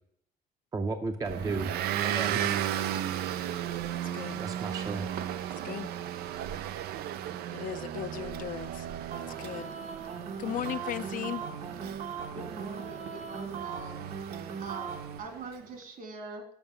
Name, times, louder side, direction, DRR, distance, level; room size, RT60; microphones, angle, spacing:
voice 1, 0.7-1.7 2.0-2.4 4.4-5.1, right 3 dB, 20° right, 0.6 m, -33 dB
Motor vehicle (road) / Engine, 1.2-15.5, right 11 dB, 85° right, 0.5 m, -35 dB
voice 2, 7.5-8.9 9.4-9.7 10.4-11.4, left 10 dB, 60° left, 0.5 m, -36 dB
sound 1, 9.1-15.2, right 6 dB, 45° right, 0.9 m, -39 dB
voice 3, 12.3-14.1 14.6-16.5, right 3 dB, 65° right, 2.3 m, -43 dB
7.1 x 5.6 x 6.8 m
cardioid pair, 130°, 16 cm